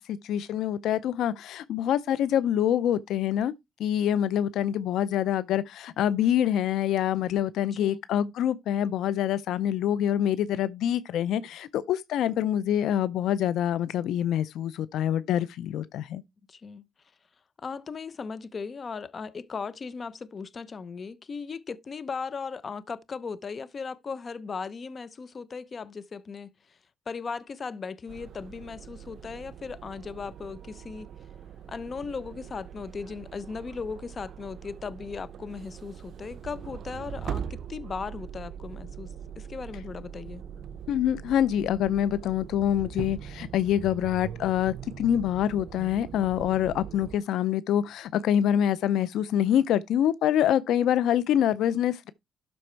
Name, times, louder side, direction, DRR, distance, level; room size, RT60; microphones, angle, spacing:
voice 1, 0.0-3.5 3.8-16.2 40.9-52.1, left 10 dB, 80° left, 0.5 m, -26 dB
voice 2, 7.6-8.0 16.5-16.9 17.6-26.8 27.1-31.1 31.7-40.4, left 5 dB, 40° left, 0.8 m, -37 dB
sound 1, 28.1-47.2, right 8 dB, 65° right, 0.6 m, -41 dB
12.5 x 4.3 x 4.5 m
cardioid pair, 90°, 0 cm